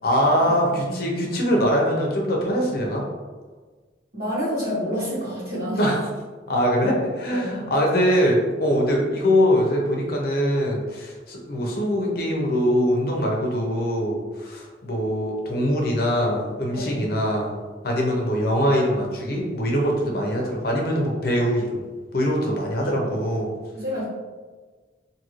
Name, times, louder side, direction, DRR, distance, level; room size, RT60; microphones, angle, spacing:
voice 1, 0.0-3.0 5.8-6.0 6.5-17.5 17.8-21.8 22.1-23.5, equal, 55° left, -1 dB, 0.6 m, -22 dB
voice 2, 0.7-1.0 4.1-5.8 7.3-7.9 16.7-17.1 22.8-22.9 23.7-24.1, equal, 60° right, -8 dB, 1.3 m, -29 dB
2.7 x 2.5 x 3.0 m, 1.4 s
head